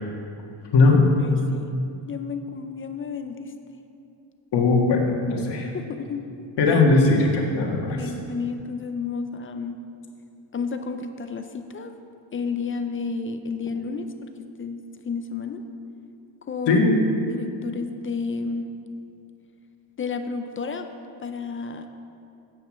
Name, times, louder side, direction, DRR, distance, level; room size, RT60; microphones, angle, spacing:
voice 1, 1.2-1.7 2.1-3.5 5.7-6.3 6.7-6.8 7.9-9.8 10.5-11.9 12.3-14.3 14.6-15.6 16.5-16.9 17.3-18.7 20.0-20.9 21.2-21.9, left 5 dB, 30° left, 7 dB, 0.4 m, -31 dB
voice 2, 4.5-5.7 6.6-8.0 16.7-16.9, left 3 dB, 60° left, -1 dB, 1.8 m, -19 dB
9.0 x 5.4 x 7.5 m, 2.6 s
cardioid pair, 130°, 45 cm